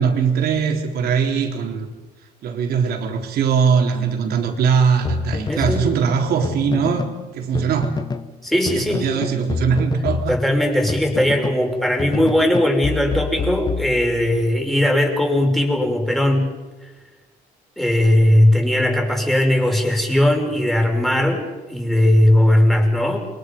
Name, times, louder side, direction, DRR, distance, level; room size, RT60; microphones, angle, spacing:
voice 1, 0.0-1.9 2.4-7.9 8.7-10.3, right 6 dB, 65° right, 3 dB, 3.8 m, -21 dB
sound 1, 5.0-7.2 7.5-8.3 8.7-11.7 12.0-14.4, left 4 dB, 25° left, 1.2 m, -27 dB
voice 2, 5.5-5.9 8.4-9.3 10.3-16.5 17.8-23.3, left 1 dB, ahead, 1 dB, 5.5 m, -18 dB
29.5 x 23.0 x 5.4 m, 1.2 s
cardioid pair, 110°, 17 cm